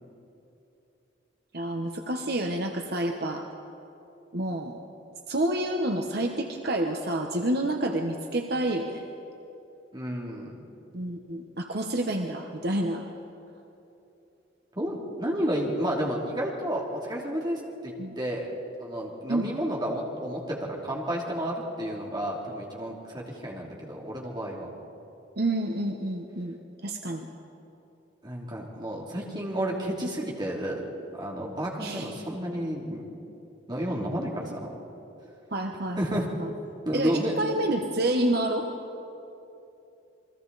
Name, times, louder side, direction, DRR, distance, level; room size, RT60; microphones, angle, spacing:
voice 1, 1.5-3.5 4.3-4.8 5.3-9.0 10.9-13.0 18.0-18.2 19.3-19.5 25.4-26.5 26.8-27.2 31.8-32.1 35.5-36.5 36.9-38.7, right 1 dB, 60° right, 3 dB, 1.1 m, -29 dB
voice 2, 9.9-10.6 14.7-18.5 18.8-24.7 27.1-27.2 28.2-30.8 31.1-33.0 33.7-34.7 36.0-36.3 36.8-37.3, equal, 25° right, -3 dB, 3.1 m, -31 dB
29.0 x 21.5 x 4.1 m, 2.9 s
head